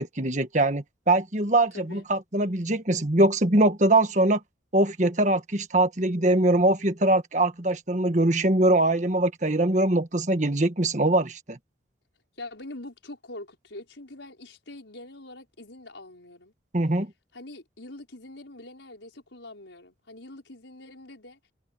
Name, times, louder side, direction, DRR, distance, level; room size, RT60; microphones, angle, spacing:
voice 1, 0.0-4.4 4.7-11.6 16.7-17.1, right 2 dB, 40° right, 1.5 m, -22 dB
voice 2, 1.7-2.1 12.4-16.5 17.3-21.4, left 2 dB, 85° left, 5.8 m, -44 dB
head